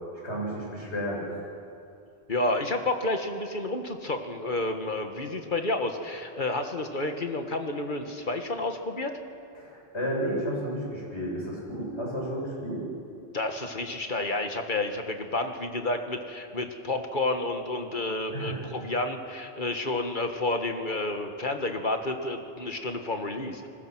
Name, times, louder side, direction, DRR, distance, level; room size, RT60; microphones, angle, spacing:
voice 1, 0.2-1.2 9.6-12.8 18.3-18.7, equal, 85° left, -3 dB, 7.5 m, -32 dB
voice 2, 2.3-9.2 13.3-23.7, left 2 dB, 50° left, 5 dB, 1.8 m, -30 dB
30.0 x 20.5 x 6.2 m, 2.6 s
omnidirectional pair, 1.1 m